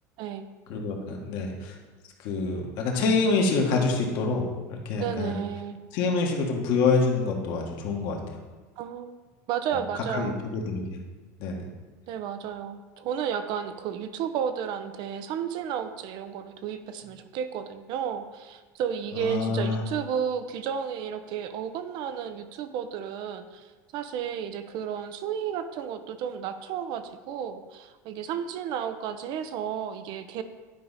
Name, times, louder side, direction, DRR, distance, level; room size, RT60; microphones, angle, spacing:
voice 1, 0.2-0.5 5.0-5.8 8.8-9.1 9.5-10.4 12.1-30.4, right 8 dB, 55° right, 10 dB, 0.7 m, -32 dB
voice 2, 0.7-1.8 2.2-5.4 5.9-8.2 10.1-11.0 11.4-11.7 19.1-19.8, left 4 dB, 65° left, 0 dB, 1.7 m, -26 dB
10.5 x 4.7 x 4.2 m, 1.3 s
supercardioid pair, 115°, 9 cm